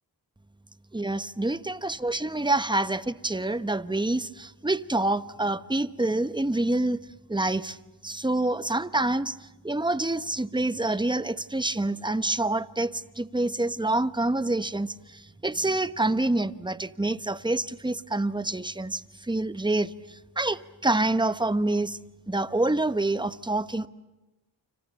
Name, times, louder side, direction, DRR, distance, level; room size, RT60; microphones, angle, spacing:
voice 1, 0.9-7.0 7.3-7.8 8.0-22.0 22.3-23.9, right 2 dB, 10° right, 13 dB, 1.0 m, -27 dB
29.5 x 26.0 x 7.2 m, 1.1 s
cardioid pair, 55°, 47 cm